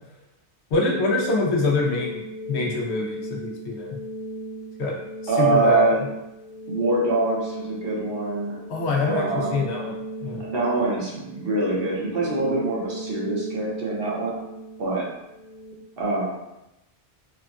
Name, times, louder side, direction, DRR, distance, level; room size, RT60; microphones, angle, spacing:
voice 1, 0.7-4.0 4.8-4.9 5.4-5.9 8.7-10.0 10.2-10.4, left 3 dB, 90° left, -1 dB, 0.9 m, -25 dB
sound 1, 0.7-15.7, right 1 dB, 40° right, 0.7 m, -36 dB
voice 2, 5.3-6.0 6.7-8.6 9.0-9.6 10.4-14.4 14.8-15.0 16.0-16.3, right 2 dB, 65° right, -5 dB, 1.0 m, -24 dB
3.5 x 2.2 x 2.4 m, 0.92 s
omnidirectional pair, 1.1 m